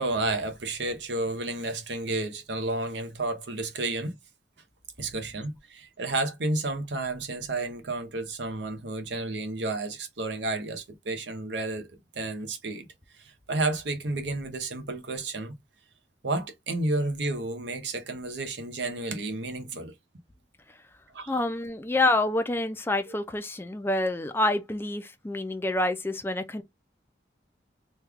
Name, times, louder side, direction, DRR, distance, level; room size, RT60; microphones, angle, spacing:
voice 1, 0.0-4.1 5.0-12.9 13.2-15.5 16.2-19.9 21.1-21.3, right 2 dB, 75° right, 0.8 m, -31 dB
voice 2, 21.3-26.6, left 2 dB, 15° left, 0.4 m, -27 dB
3.1 x 2.3 x 3.4 m
head